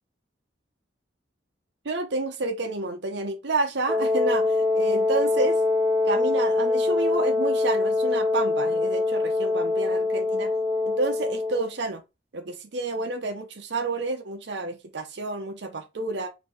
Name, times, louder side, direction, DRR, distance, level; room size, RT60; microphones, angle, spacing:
voice 1, 1.8-5.6 6.1-10.5 10.9-12.0 12.3-16.3, right 3 dB, 60° right, 0.7 m, -30 dB
Wind instrument woodwind instrument, 3.9-11.7, left 3 dB, 10° right, 0.4 m, -24 dB
4.5 x 2.8 x 4.2 m
head